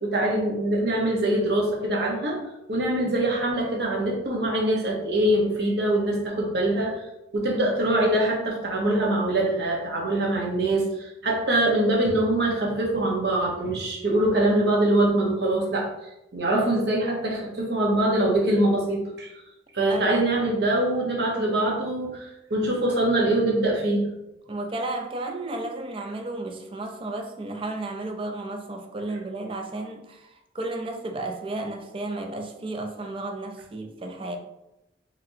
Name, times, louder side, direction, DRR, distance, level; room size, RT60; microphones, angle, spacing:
voice 1, 0.0-2.4 2.7-7.0 7.3-15.9 16.3-19.3 19.7-24.1, right 1 dB, 60° right, 1.0 m, -23 dB
voice 2, 19.9-20.7 24.5-34.4, right 2 dB, 30° right, 0.4 m, -33 dB
4.0 x 3.1 x 2.7 m
head